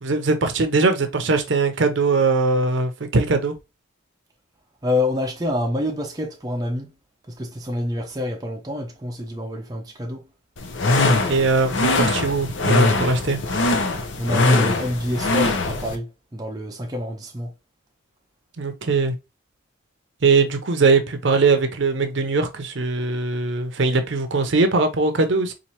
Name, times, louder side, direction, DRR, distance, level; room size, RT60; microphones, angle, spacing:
voice 1, 0.0-3.6 11.3-13.4 18.6-19.2 20.2-25.5, right 3 dB, 60° right, 0.6 m, -20 dB
voice 2, 4.8-6.9 7.3-10.3 14.2-17.5, left 1 dB, 20° right, 0.5 m, -27 dB
sound 1, 10.6-15.9, left 2 dB, 65° left, 0.6 m, -21 dB
4.2 x 2.5 x 2.8 m
head